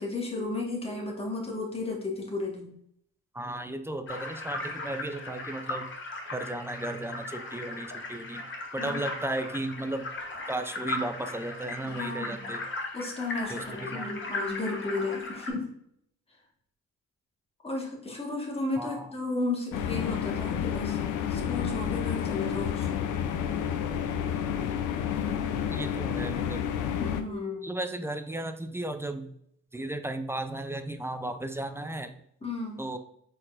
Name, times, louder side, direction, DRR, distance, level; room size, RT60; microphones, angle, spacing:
voice 1, 0.0-2.7 8.8-9.0 11.8-12.5 12.9-15.7 17.6-21.0 21.3-22.9 27.0-27.7 32.4-32.8, left 3 dB, 20° left, -1 dB, 1.5 m, -33 dB
voice 2, 3.3-5.9 6.3-8.4 8.7-10.0 10.5-12.6 13.5-14.1 18.8-19.0 25.7-26.6 27.6-29.3 29.7-32.1 32.8-33.0, right 1 dB, 10° right, 8 dB, 0.4 m, -35 dB
sound 1, 4.1-15.5, left 2 dB, 40° left, 1.1 m, -37 dB
sound 2, 19.7-27.2, left 8 dB, 80° left, 0.6 m, -30 dB
4.3 x 4.0 x 2.5 m, 0.70 s
cardioid pair, 85°, 31 cm